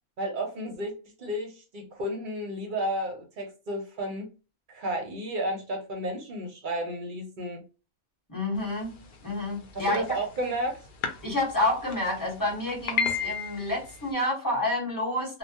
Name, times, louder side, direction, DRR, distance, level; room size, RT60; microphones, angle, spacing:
voice 1, 0.2-0.9 1.2-4.3 4.7-7.6 9.7-10.8, right 1 dB, 55° right, 0.7 m, -32 dB
voice 2, 8.3-10.0 11.2-15.4, left 1 dB, 20° left, 1.0 m, -29 dB
sound 1, 9.8-10.2 11.0-11.1 11.4-11.5 11.9-12.0 12.7-14.0, left 6 dB, 60° left, 0.6 m, -29 dB
2.2 x 2.1 x 2.7 m
omnidirectional pair, 1.2 m